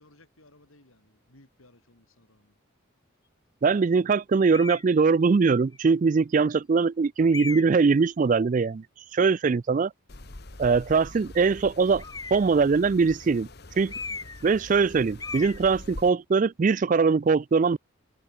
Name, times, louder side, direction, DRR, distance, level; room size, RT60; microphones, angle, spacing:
voice 1, 0.0-2.6, left 1 dB, 80° left, 7.8 m, -58 dB
voice 2, 3.6-8.8 9.1-9.9 10.6-12.0 12.3-13.5 13.8-13.9 14.4-17.8, right 4 dB, 35° right, 0.3 m, -22 dB
sound 1, 4.5-4.9 5.7-5.8 7.3-7.9 12.0-12.6 13.9-14.5 14.7-14.9 15.2-15.6, left 4 dB, 15° left, 2.0 m, -37 dB
sound 2, 10.1-16.1, left 2 dB, 50° left, 1.6 m, -44 dB
head